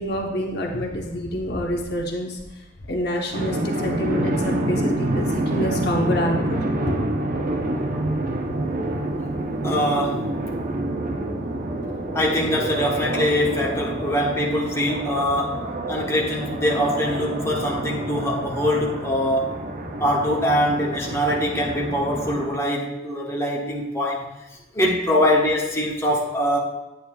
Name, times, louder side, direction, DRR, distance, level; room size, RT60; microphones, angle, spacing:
voice 1, 0.0-2.4 2.9-6.6, equal, 55° left, 1 dB, 1.0 m, -27 dB
sound 1, 3.3-22.5, right 1 dB, 45° right, 0.8 m, -27 dB
voice 2, 9.6-10.4 12.1-19.6 20.0-24.3 24.7-26.6, equal, 15° left, -4 dB, 1.1 m, -23 dB
9.2 x 9.0 x 2.3 m, 1.0 s
head